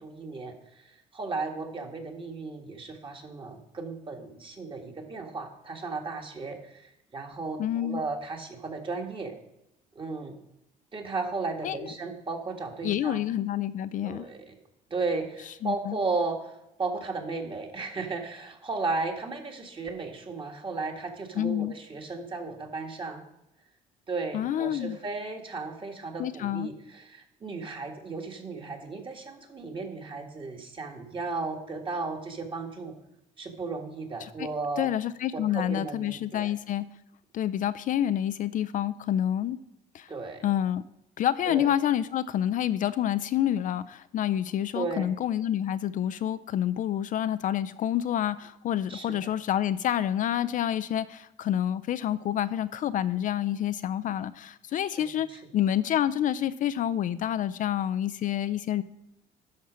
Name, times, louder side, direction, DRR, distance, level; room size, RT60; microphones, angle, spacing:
voice 1, 0.0-9.3 9.9-10.3 10.9-13.2 14.0-14.5 14.9-23.2 24.1-32.9 33.4-34.9 35.3-36.5 40.1-40.4 41.5-41.7 44.7-45.1 48.9-49.3 54.7-54.8 55.3-55.4, right 3 dB, 30° right, 3 dB, 1.6 m, -35 dB
voice 2, 7.6-8.0 11.6-11.9 12.8-14.2 15.6-16.0 21.4-21.7 24.3-25.0 26.2-26.7 34.2-34.5 34.8-36.9 37.3-39.6 39.9-40.1 40.4-40.8 41.2-58.8, left 11 dB, 50° left, 14 dB, 0.4 m, -28 dB
11.5 x 4.2 x 6.2 m, 0.85 s
cardioid pair, 110°, 17 cm